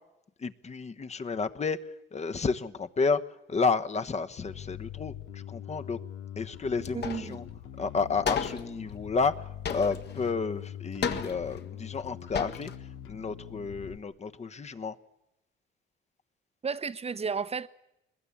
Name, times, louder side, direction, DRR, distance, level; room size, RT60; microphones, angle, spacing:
voice 1, 0.4-6.0 6.4-7.4 7.8-15.0, left 4 dB, 35° left, 1.1 m, -31 dB
Bass guitar, 4.4-14.0, left 11 dB, 90° left, 1.1 m, -43 dB
sound 1, 6.8-7.4 7.7-7.8 8.2-8.7 9.6-10.3 11.0-11.6 12.1-12.2 12.3-12.8, left 6 dB, 60° left, 1.8 m, -33 dB
voice 2, 6.9-7.4 16.6-17.7, right 5 dB, 30° right, 1.0 m, -32 dB
22.0 x 20.5 x 8.5 m
cardioid pair, 90°, 20 cm